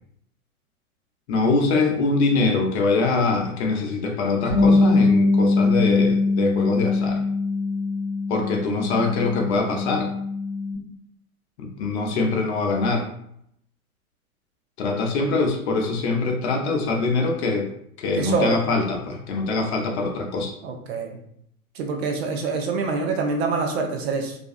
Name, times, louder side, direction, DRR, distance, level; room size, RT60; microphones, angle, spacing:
voice 1, 1.3-7.2 8.3-10.1 11.6-13.1 14.8-17.7 18.0-20.5, left 3 dB, 50° left, 2 dB, 0.6 m, -23 dB
Bass guitar, 4.5-10.8, left 3 dB, 30° right, 1.3 m, -21 dB
voice 2, 18.1-18.6 20.6-21.2 21.8-24.4, right 4 dB, 50° right, 3 dB, 0.5 m, -25 dB
2.4 x 2.3 x 2.5 m, 0.72 s
figure-of-eight pair, 100°, 44 cm